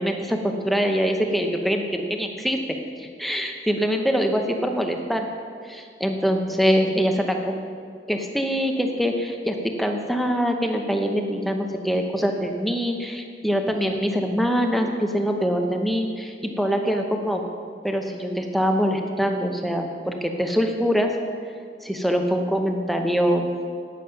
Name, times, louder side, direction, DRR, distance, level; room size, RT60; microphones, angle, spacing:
voice 1, 0.0-2.6 3.0-5.3 5.7-7.6 8.1-17.4 17.8-21.1 21.8-23.5, equal, ahead, 3 dB, 0.8 m, -24 dB
11.0 x 9.2 x 5.8 m, 2.2 s
head